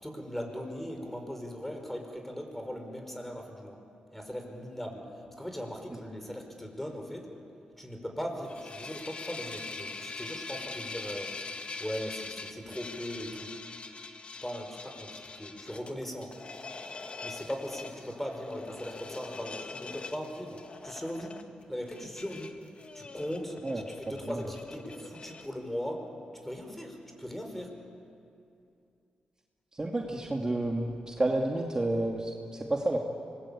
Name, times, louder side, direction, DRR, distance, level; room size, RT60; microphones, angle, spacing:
voice 1, 0.0-3.8 4.1-7.3 7.8-11.4 11.8-13.6 14.4-16.4 17.2-21.4 21.7-22.6 22.9-26.1 26.4-27.8, equal, 10° left, 4 dB, 5.4 m, -39 dB
sound 1, 8.3-25.5, left 3 dB, 45° left, 1.9 m, -43 dB
voice 2, 29.7-33.0, right 2 dB, 25° right, 0 dB, 2.6 m, -30 dB
25.0 x 21.0 x 8.7 m, 2.5 s
cardioid pair, 60°, 3 cm